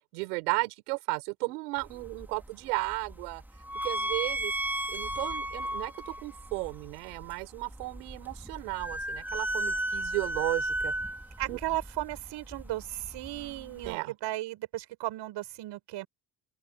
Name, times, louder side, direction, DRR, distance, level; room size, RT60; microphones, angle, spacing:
voice 1, 0.1-3.4 3.8-4.5 4.9-10.9 11.5-11.6 13.8-14.1, right 27 dB, 90° right, 6.2 m, -34 dB
sound 1, 1.8-14.0, right 1 dB, 5° right, 2.4 m, -35 dB
voice 2, 11.4-12.8 13.1-16.1, right 16 dB, 70° right, 7.2 m, -35 dB
open air
supercardioid pair, 75°, 44 cm